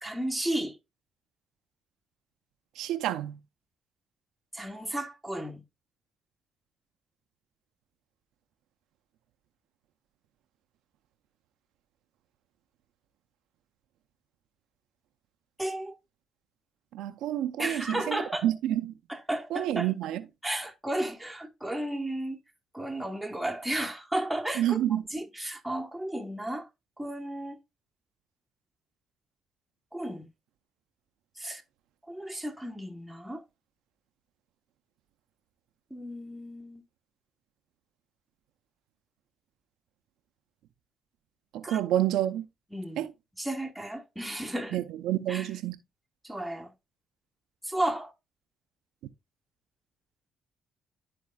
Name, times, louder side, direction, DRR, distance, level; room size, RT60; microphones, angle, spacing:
voice 1, 0.0-0.8 4.5-5.6 15.6-15.9 17.6-18.5 19.1-19.9 20.4-22.4 22.7-26.7 27.0-27.6 29.9-30.3 31.4-31.6 32.1-33.4 35.9-36.8 41.6-41.8 42.7-43.1 43.4-44.8 45.3-45.5 46.2-46.7 47.6-48.1, right 1 dB, ahead, 1.1 m, -33 dB
voice 2, 2.8-3.4 16.9-18.9 19.5-20.2 24.6-25.0 41.5-42.4 43.0-43.1 44.7-45.8, right 12 dB, 90° right, 0.5 m, -29 dB
11.5 x 4.2 x 2.3 m
cardioid pair, 90°, 0 cm